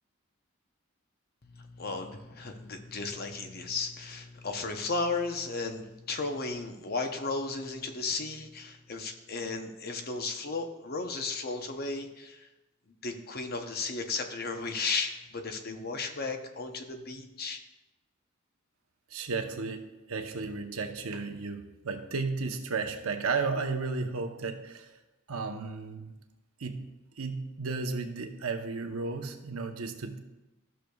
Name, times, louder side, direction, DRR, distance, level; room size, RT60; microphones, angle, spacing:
voice 1, 1.4-12.5 13.0-17.6, left 3 dB, 45° left, 5 dB, 0.8 m, -35 dB
voice 2, 19.1-24.9 25.3-26.1 26.6-26.8 27.2-30.2, right 4 dB, 85° right, 5 dB, 0.8 m, -34 dB
14.0 x 6.5 x 2.3 m, 1.0 s
head